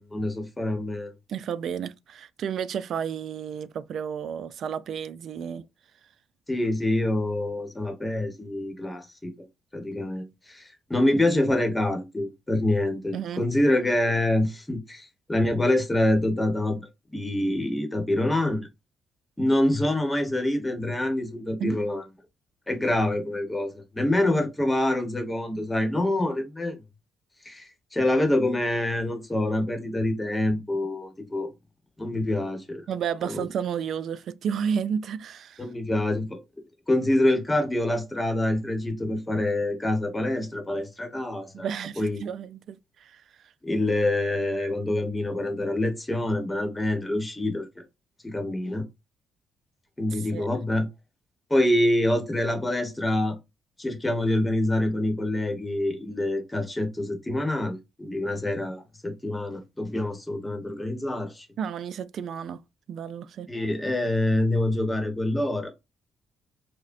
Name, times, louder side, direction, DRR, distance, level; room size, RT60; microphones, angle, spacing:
voice 1, 0.0-1.1 6.5-9.3 9.7-18.7 19.4-22.0 22.7-26.8 27.4-31.5 32.0-32.8 33.2-33.4 35.6-36.4 36.9-41.7 42.0-42.2 43.6-47.8 48.2-48.8 50.0-50.9 51.5-53.3 53.8-61.5 63.5-65.7, left 1 dB, 15° left, 1.0 m, -26 dB
voice 2, 1.3-5.6 13.1-13.4 21.6-21.8 32.9-35.7 41.5-43.5 50.1-50.5 61.6-62.6 62.9-63.5, right 7 dB, 65° right, 0.3 m, -32 dB
4.9 x 2.1 x 2.5 m
cardioid pair, 90°, 0 cm